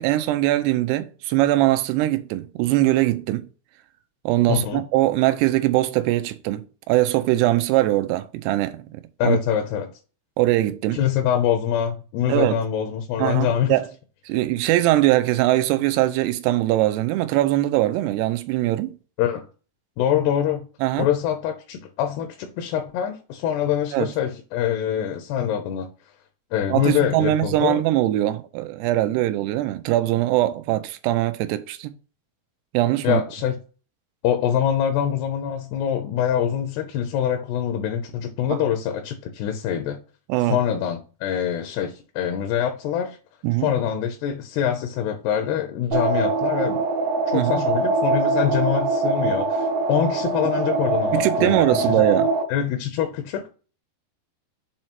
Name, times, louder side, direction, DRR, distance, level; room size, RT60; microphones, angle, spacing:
voice 1, 0.0-3.5 4.3-8.8 9.2-9.4 10.4-11.0 12.3-12.6 13.2-13.8 14.3-19.0 20.8-21.1 23.9-24.1 26.7-31.9 32.7-33.2 38.5-38.6 40.3-40.6 43.4-43.7 47.3-47.6 51.1-52.3, right 16 dB, 85° right, 2.7 m, -21 dB
voice 2, 4.5-4.9 9.2-9.9 10.9-13.8 19.2-19.5 20.0-20.7 21.0-25.9 26.5-27.8 33.0-33.6 34.2-40.0 40.5-43.2 43.6-46.8 47.3-52.0 52.5-53.5, left 9 dB, 80° left, 2.8 m, -24 dB
sound 1, 45.9-52.4, right 3 dB, 70° right, 2.5 m, -23 dB
7.2 x 3.2 x 4.2 m
omnidirectional pair, 4.8 m